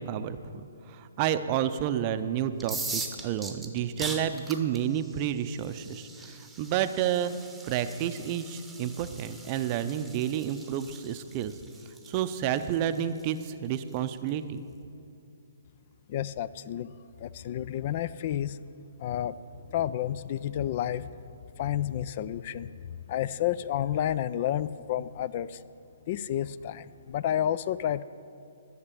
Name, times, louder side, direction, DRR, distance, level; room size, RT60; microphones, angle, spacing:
voice 1, 0.0-7.3 7.7-11.5 12.1-14.6, right 10 dB, 35° right, 11 dB, 0.5 m, -30 dB
sound 1, 2.5-14.3, right 3 dB, ahead, 0.9 m, -42 dB
voice 2, 16.1-16.9 17.2-18.6 19.0-19.3 19.7-21.1 21.6-22.7 23.1-25.6 26.1-28.0, left 11 dB, 45° left, 17 dB, 0.3 m, -30 dB
12.0 x 6.6 x 8.4 m, 2.7 s
hypercardioid pair, 145°, 0 cm